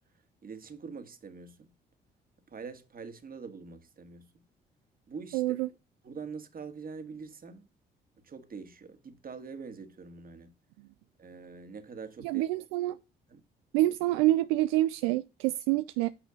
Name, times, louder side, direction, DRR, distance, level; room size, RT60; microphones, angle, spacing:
voice 1, 0.4-1.7 2.5-4.4 5.1-5.6 6.0-7.7 8.2-10.5 11.2-12.5 13.3-13.4, right 5 dB, 45° right, 2.0 m, -44 dB
voice 2, 5.3-5.7 12.2-13.0 13.7-16.1, right 16 dB, 85° right, 0.4 m, -27 dB
9.1 x 6.2 x 3.9 m
hypercardioid pair, 50°, 21 cm